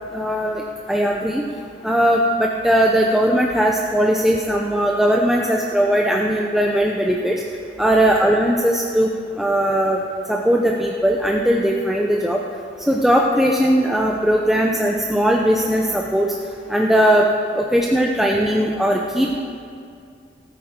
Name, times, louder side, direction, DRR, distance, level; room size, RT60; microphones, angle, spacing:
voice 1, 0.1-0.6 0.9-1.4 1.8-7.4 7.8-9.1 9.3-10.0 10.3-12.4 12.9-16.3 16.7-17.3 17.5-19.4, equal, ahead, -1 dB, 0.6 m, -18 dB
18.5 x 9.3 x 3.7 m, 2.3 s
head